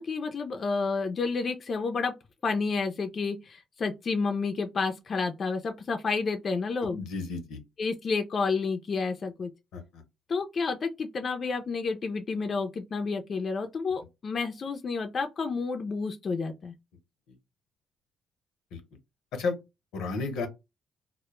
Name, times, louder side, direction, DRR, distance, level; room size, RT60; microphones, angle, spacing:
voice 1, 0.0-2.1 2.4-7.0 7.8-9.5 10.3-16.7, left 4 dB, 45° left, 0.4 m, -30 dB
voice 2, 6.9-7.6 9.7-10.0 18.7-18.8 19.3-19.6 19.9-20.5, left 4 dB, 90° left, 0.6 m, -32 dB
2.1 x 2.0 x 2.9 m
cardioid pair, 90°, 0 cm